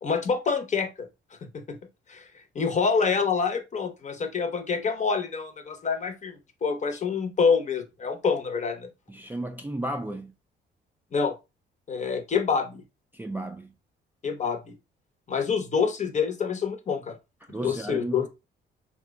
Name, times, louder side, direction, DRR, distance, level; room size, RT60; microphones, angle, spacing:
voice 1, 0.0-1.1 1.4-1.8 2.1-2.2 2.5-8.9 11.1-11.3 11.9-12.8 14.2-14.8 15.3-17.2 17.6-18.3, left 5 dB, 35° left, 0.7 m, -27 dB
voice 2, 9.1-10.3 13.1-13.7 17.5-18.3, right 1 dB, 10° right, 0.4 m, -33 dB
2.9 x 2.1 x 3.4 m
cardioid pair, 90°, 20 cm